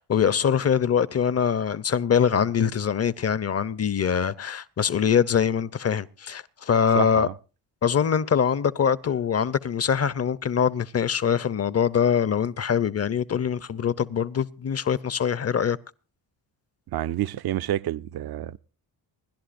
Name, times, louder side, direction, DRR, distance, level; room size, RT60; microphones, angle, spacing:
voice 1, 0.0-7.3 7.8-15.8, left 7 dB, 30° left, 0.6 m, -23 dB
voice 2, 6.9-7.3 16.9-18.6, right 13 dB, 50° right, 0.6 m, -28 dB
28.0 x 11.0 x 2.6 m
supercardioid pair, 50°, 49 cm